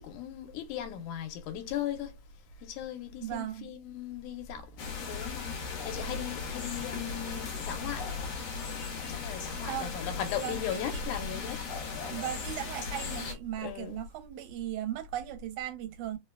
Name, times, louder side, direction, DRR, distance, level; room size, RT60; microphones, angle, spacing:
voice 1, 0.0-2.1 2.6-8.1 9.1-11.6 13.6-14.0, left 9 dB, 90° left, 2.1 m, -38 dB
voice 2, 3.2-3.7 9.6-9.9 10.4-11.0 12.1-16.2, right 12 dB, 85° right, 2.1 m, -37 dB
sound 1, 4.8-13.3, left 5 dB, 65° left, 1.9 m, -37 dB
4.8 x 2.2 x 2.2 m
omnidirectional pair, 3.5 m